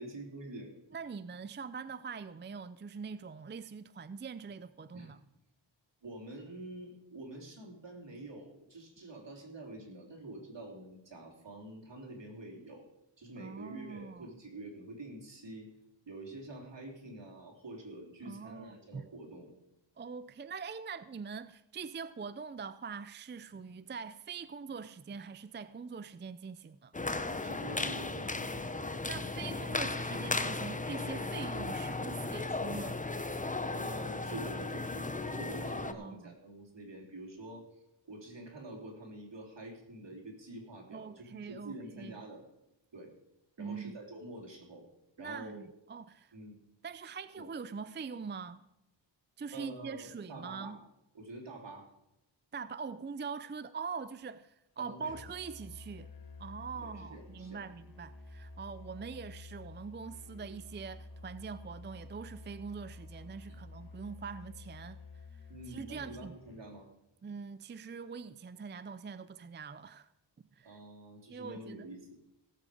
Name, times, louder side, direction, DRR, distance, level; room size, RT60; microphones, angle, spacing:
voice 1, 0.0-0.7 4.9-5.1 6.0-12.9 13.2-15.7 16.1-19.5 23.5-23.6 27.4-28.7 33.7-37.6 38.1-42.4 42.9-43.1 43.6-44.9 45.2-45.6 46.3-46.6 47.4-47.5 49.5-50.8 51.1-51.9 54.8-55.1 56.7-57.6 63.5-63.6 65.5-66.9 70.6-72.2, right 1 dB, 65° right, 3.4 m, -47 dB
voice 2, 0.9-5.2 13.4-14.3 18.2-19.1 20.0-26.9 29.1-33.0 35.9-36.3 40.9-42.2 43.6-44.0 45.2-46.3 46.8-48.6 49.4-50.8 52.5-56.1 56.4-65.0 65.7-66.3 67.2-70.1 70.6-70.8 71.3-71.9, right 5 dB, 25° right, 0.4 m, -43 dB
sound 1, 26.9-35.9, left 3 dB, 15° left, 0.7 m, -36 dB
Musical instrument, 55.0-66.7, left 2 dB, 50° left, 1.9 m, -50 dB
17.5 x 7.7 x 4.9 m
wide cardioid pair, 75°, 46 cm